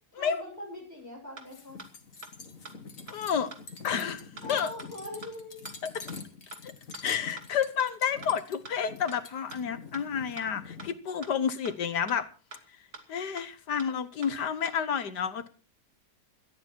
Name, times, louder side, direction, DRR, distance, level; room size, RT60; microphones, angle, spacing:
voice 1, 0.1-1.8 4.4-5.6, left 1 dB, 10° right, 7.6 m, -42 dB
sound 1, 1.0-1.1 1.4-1.5 1.8-1.9 2.2-2.3 2.7-2.8 3.1-3.2 3.5-3.6 3.9-4.0 4.4-4.5 4.8-4.9 5.2-5.3 5.7-5.8 6.1-6.2 6.5-6.6 6.9-7.0 7.4-7.5 7.8-7.9 8.2-8.3 8.7-8.8 9.1-9.2 9.5-9.6 9.9-10.0 10.4-10.5 10.8-10.9 11.2-11.3 11.7-11.8 12.1-12.2 12.5-12.6 12.9-13.0 13.4-13.5 13.8-13.9 14.2-14.3 14.7-14.8, right 4 dB, 70° right, 2.8 m, -44 dB
sound 2, 1.5-10.9, left 4 dB, 55° left, 2.3 m, -45 dB
voice 2, 3.1-3.5 3.8-4.2 4.5-4.7 6.0-6.1 7.0-12.3 13.1-15.5, left 7 dB, 90° left, 1.9 m, -30 dB
18.0 x 13.5 x 4.5 m
omnidirectional pair, 1.7 m